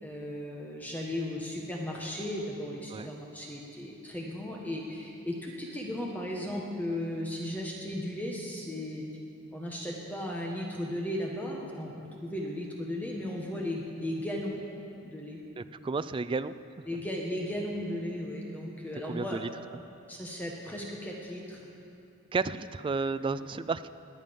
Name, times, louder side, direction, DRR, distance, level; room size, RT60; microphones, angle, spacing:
voice 1, 0.0-9.0 9.5-11.9 12.2-14.6 15.1-15.4 16.9-19.4 20.1-21.7, left 1 dB, 10° left, -2 dB, 1.2 m, -36 dB
voice 2, 15.6-16.9 19.1-19.5 22.3-23.9, right 4 dB, 25° right, 14 dB, 0.3 m, -32 dB
20.0 x 9.1 x 5.3 m, 2.7 s
head